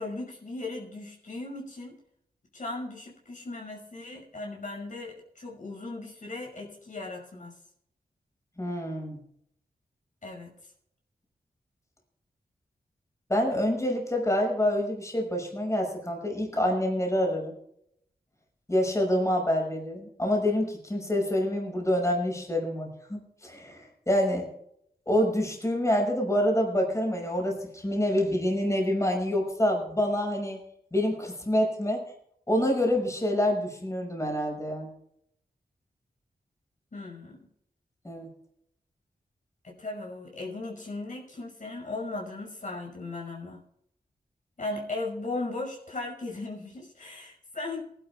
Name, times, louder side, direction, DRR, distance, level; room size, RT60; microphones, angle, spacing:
voice 1, 0.0-2.0 2.5-7.5 10.2-10.5 36.9-37.5 39.6-43.6 44.6-47.8, left 2 dB, 55° left, -1 dB, 5.8 m, -37 dB
voice 2, 8.6-9.2 13.3-17.5 18.7-24.5 25.1-30.6 30.9-32.0 32.5-34.9 38.0-38.3, left 1 dB, 20° left, 1 dB, 5.9 m, -27 dB
18.5 x 11.5 x 3.6 m, 0.71 s
cardioid pair, 65°, 16 cm